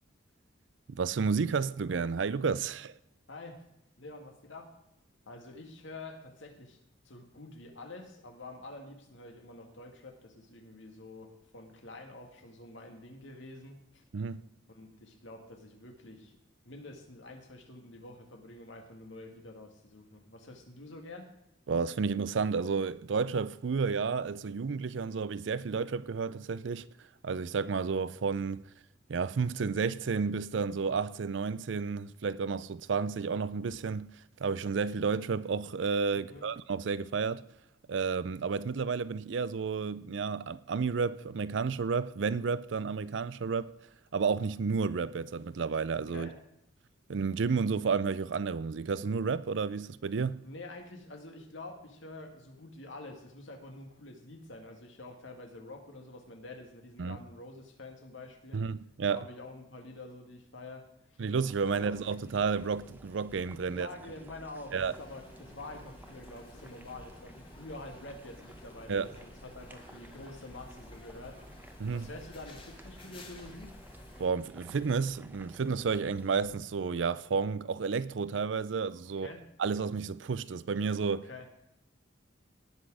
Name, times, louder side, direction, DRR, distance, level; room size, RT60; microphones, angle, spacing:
voice 1, 0.9-2.9 14.1-14.4 21.7-26.9 27.2-28.6 29.1-34.1 34.4-37.5 37.9-43.7 44.1-46.3 47.1-50.4 57.0-57.2 58.5-59.2 61.2-63.9 64.7-64.9 68.9-69.1 71.8-72.1 74.2-79.3 79.6-81.3, right 5 dB, 70° right, 0.5 m, -31 dB
voice 2, 3.3-3.6 4.0-4.7 5.3-6.8 7.0-14.0 14.7-16.4 16.6-21.3 36.1-36.5 46.1-46.4 50.4-58.7 59.1-61.2 61.7-62.0 63.7-71.7 71.9-73.7 79.2-79.4 81.1-81.5, left 2 dB, 75° left, 2.1 m, -47 dB
sound 1, 61.3-76.6, right 1 dB, 10° right, 0.9 m, -54 dB
sound 2, 64.7-74.3, left 1 dB, 30° left, 1.7 m, -52 dB
18.0 x 6.3 x 4.9 m
head